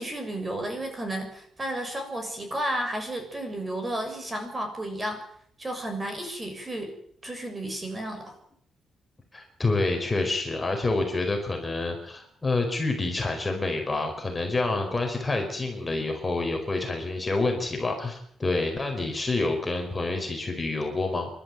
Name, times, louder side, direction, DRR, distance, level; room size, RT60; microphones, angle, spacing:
voice 1, 0.0-5.2 5.6-6.9 7.2-8.3, right 1 dB, 20° right, 5 dB, 6.9 m, -32 dB
voice 2, 9.3-21.3, left 2 dB, 20° left, 3 dB, 4.7 m, -28 dB
28.5 x 12.5 x 9.3 m, 0.66 s
cardioid pair, 120°, 0 cm